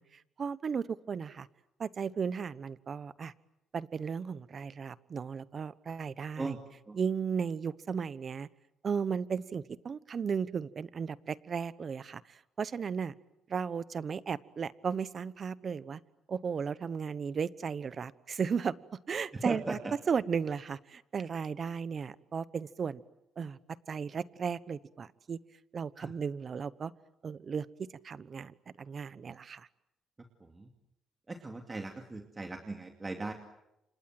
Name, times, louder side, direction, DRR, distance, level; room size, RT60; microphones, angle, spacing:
voice 1, 0.0-1.5 1.8-3.3 3.7-6.5 6.9-8.5 8.8-13.1 13.5-16.0 16.3-18.7 19.1-19.8 20.1-23.0 23.4-23.6 23.9-25.4 25.7-26.9 27.2-29.7, right 6 dB, 45° right, 17 dB, 1.1 m, -35 dB
voice 2, 19.3-19.9 26.0-26.1 30.4-30.7 31.3-33.3, right 3 dB, 25° right, 4 dB, 2.6 m, -38 dB
29.5 x 26.5 x 7.8 m, 0.87 s
cardioid pair, 90°, 0 cm